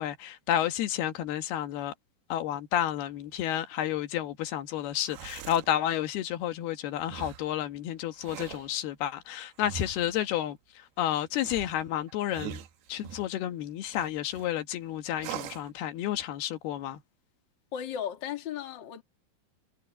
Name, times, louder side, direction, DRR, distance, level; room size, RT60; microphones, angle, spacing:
voice 1, 0.0-1.9 2.3-12.6 12.9-17.0, left 11 dB, 85° left, 3.3 m, -31 dB
sound 1, 4.9-5.7 7.1-7.5 8.1-8.7 9.6-10.2 11.4-13.3 13.9-14.5 15.2-15.7, right 11 dB, 85° right, 3.4 m, -42 dB
voice 2, 17.7-19.0, left 9 dB, 35° left, 2.1 m, -35 dB
omnidirectional pair, 4.4 m